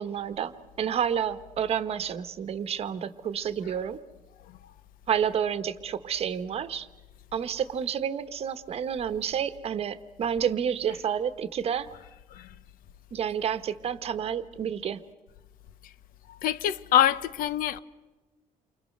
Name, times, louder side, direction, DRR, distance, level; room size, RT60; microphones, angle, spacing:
voice 1, 0.0-4.0 5.1-6.9 7.3-11.9 13.1-15.0, right 8 dB, 40° right, 1.1 m, -30 dB
voice 2, 16.3-17.8, left 11 dB, 70° left, 0.8 m, -25 dB
29.0 x 25.0 x 6.6 m
cardioid pair, 165°, 15 cm